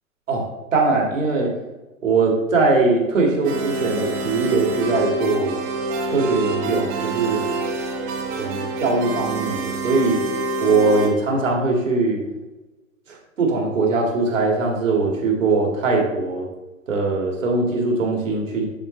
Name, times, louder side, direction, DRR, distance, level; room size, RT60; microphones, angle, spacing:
voice 1, 0.7-1.5 2.0-5.6 6.1-7.4 8.4-10.2 10.6-12.2 13.1-16.5 16.9-18.7, right 3 dB, 65° right, 0 dB, 2.1 m, -21 dB
sound 1, 3.4-11.1, right 2 dB, 35° right, 1.3 m, -26 dB
11.0 x 4.3 x 3.2 m, 1.1 s
figure-of-eight pair, 105°, 41 cm